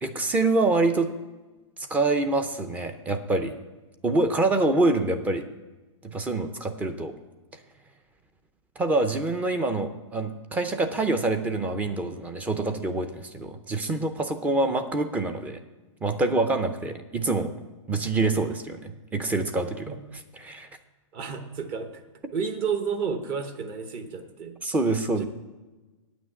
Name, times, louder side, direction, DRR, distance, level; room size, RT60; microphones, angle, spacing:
voice 1, 0.0-1.1 1.9-3.5 4.0-5.4 6.0-7.1 8.8-15.6 16.0-17.5 17.9-20.0 20.4-20.7 24.6-25.3, right 2 dB, 10° right, 9 dB, 0.6 m, -26 dB
voice 2, 21.1-22.0 22.3-24.6 25.2-25.3, right 6 dB, 30° right, 8 dB, 1.0 m, -31 dB
9.1 x 6.1 x 8.1 m, 1.2 s
hypercardioid pair, 150°, 17 cm